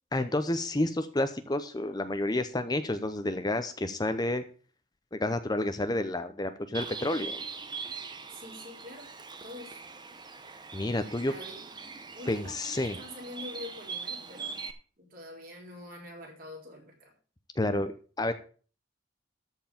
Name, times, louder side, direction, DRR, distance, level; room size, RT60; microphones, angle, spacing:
voice 1, 0.1-4.4 5.1-7.4 10.7-11.3 12.3-13.0 17.6-18.3, left 1 dB, 20° left, 9 dB, 0.7 m, -30 dB
Bird, 6.7-14.7, right 5 dB, 25° right, 0.9 m, -41 dB
voice 2, 8.3-9.1 9.4-9.8 11.2-11.6 12.1-14.7 15.0-17.1, left 1 dB, 50° right, -2 dB, 4.7 m, -45 dB
13.5 x 4.6 x 7.0 m, 0.40 s
head